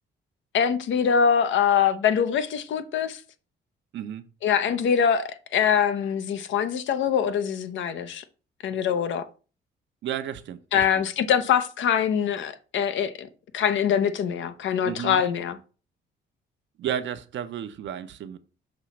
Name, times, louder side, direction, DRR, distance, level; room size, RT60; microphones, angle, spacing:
voice 1, 0.5-3.2 4.4-8.2 8.6-9.2 10.7-13.3 13.5-15.6, left 8 dB, 70° left, 0.8 m, -23 dB
voice 2, 3.9-4.2 10.0-11.0 14.8-15.2 16.8-18.4, right 9 dB, 70° right, 0.7 m, -33 dB
6.2 x 3.0 x 5.8 m
cardioid pair, 90°, 20 cm